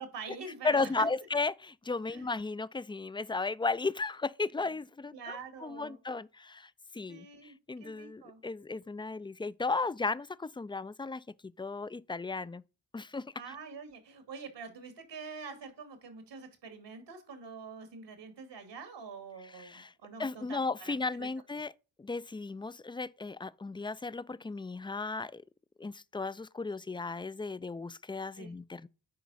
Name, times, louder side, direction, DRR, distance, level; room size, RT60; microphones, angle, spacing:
voice 1, 0.0-1.1 2.1-2.3 4.7-4.8 5.1-6.0 7.1-8.4 13.3-21.3 28.4-28.5, right 5 dB, 80° right, 2.4 m, -46 dB
voice 2, 0.6-12.6 12.9-13.3 19.5-19.9 20.2-21.7 22.0-25.4 25.8-28.9, left 3 dB, 10° left, 0.4 m, -35 dB
10.0 x 4.7 x 4.1 m
supercardioid pair, 40°, 42 cm